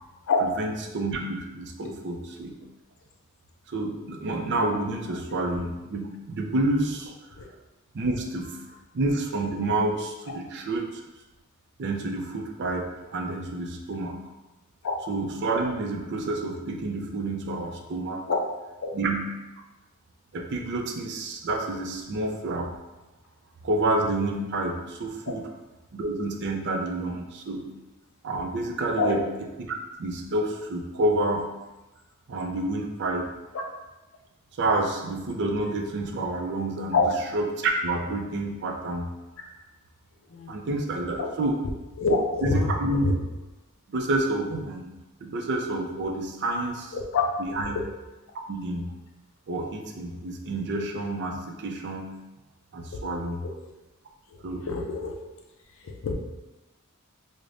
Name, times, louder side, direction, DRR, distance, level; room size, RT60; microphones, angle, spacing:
voice 1, 0.4-2.6 3.7-7.1 7.9-11.0 11.8-14.2 15.1-18.3 18.9-19.3 20.3-22.7 23.6-25.5 25.9-27.7 28.2-29.3 29.6-31.5 32.3-33.3 34.5-37.0 37.3-39.1 40.5-41.6 42.4-43.0 43.9-44.9 45.2-47.0 47.4-47.8 48.5-48.9 49.5-52.1 52.7-53.4 54.4-54.6, right 2 dB, 55° right, 2 dB, 0.4 m, -29 dB
voice 2, 42.0-43.1 47.1-47.2 53.6-53.7 54.7-55.1 55.8-56.1, left 4 dB, 60° left, 2 dB, 0.5 m, -25 dB
4.8 x 2.1 x 2.5 m, 1.0 s
head